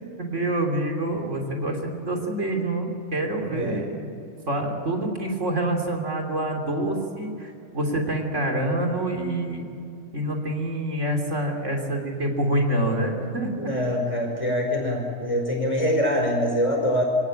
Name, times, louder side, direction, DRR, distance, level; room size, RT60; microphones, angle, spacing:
voice 1, 0.2-4.1 4.5-9.7 10.1-13.7, right 1 dB, 65° right, 2 dB, 3.4 m, -26 dB
voice 2, 3.5-3.8 13.5-17.0, equal, 25° left, 2 dB, 4.9 m, -24 dB
26.5 x 17.5 x 8.8 m, 2.6 s
omnidirectional pair, 1.4 m